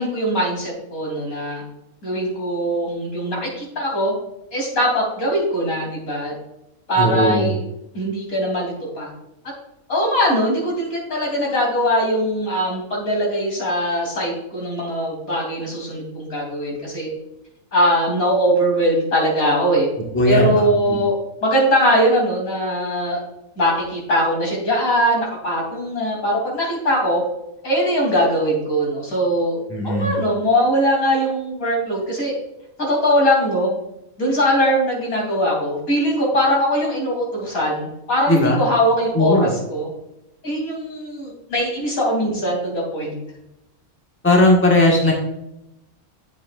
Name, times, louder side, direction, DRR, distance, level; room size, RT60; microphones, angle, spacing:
voice 1, 0.0-1.6 2.0-4.2 4.5-6.3 6.9-7.7 7.9-9.1 9.9-17.1 17.7-19.9 20.3-23.2 23.6-27.2 27.6-29.6 29.8-32.4 32.8-33.7 34.2-39.9 40.4-43.1, equal, 80° left, -2 dB, 3.7 m, -21 dB
voice 2, 7.0-7.5 20.1-21.0 29.7-30.2 38.3-38.6 39.1-39.5 44.2-45.1, left 1 dB, 10° left, -1 dB, 1.6 m, -17 dB
10.5 x 7.3 x 2.5 m, 0.86 s
omnidirectional pair, 1.5 m